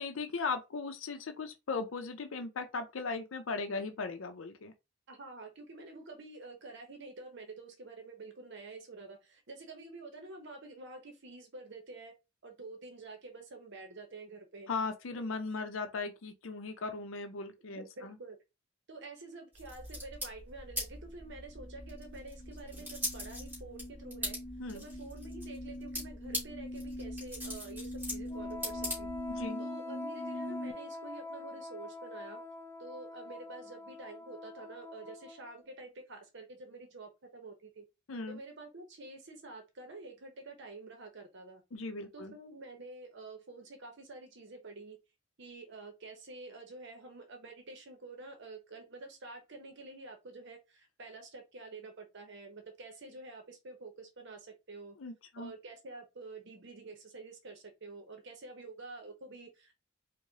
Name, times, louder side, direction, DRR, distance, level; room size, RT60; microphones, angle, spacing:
voice 1, 0.0-4.7 14.7-18.2 24.6-24.8 29.4-29.6 38.1-38.4 41.7-42.4 55.0-55.5, left 4 dB, 75° left, 0.6 m, -38 dB
voice 2, 5.1-12.1 12.4-14.7 17.7-18.4 18.9-24.4 24.7-32.4 32.8-37.8 38.3-41.6 42.1-45.0 45.4-55.0 55.4-59.8, right 3 dB, 60° right, 0.8 m, -48 dB
sound 1, 19.5-29.5, equal, 10° right, 2.2 m, -42 dB
sound 2, 21.3-30.7, left 1 dB, 50° left, 0.9 m, -44 dB
Wind instrument woodwind instrument, 28.3-35.6, left 2 dB, 10° left, 0.4 m, -45 dB
4.7 x 2.2 x 2.7 m
head